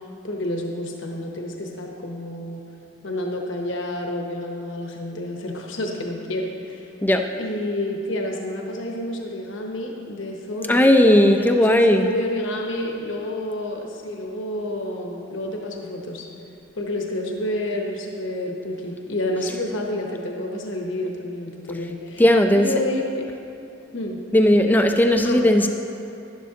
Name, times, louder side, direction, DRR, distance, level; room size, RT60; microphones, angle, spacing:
voice 1, 0.2-2.6 3.0-6.9 7.4-10.9 11.3-16.2 16.7-22.2 22.5-23.2 23.9-24.2 25.2-25.5, left 1 dB, 70° left, 1 dB, 0.9 m, -29 dB
voice 2, 10.7-12.1 22.2-22.7 24.3-25.7, left 1 dB, 10° left, 5 dB, 0.4 m, -16 dB
11.0 x 11.0 x 2.8 m, 2.8 s
head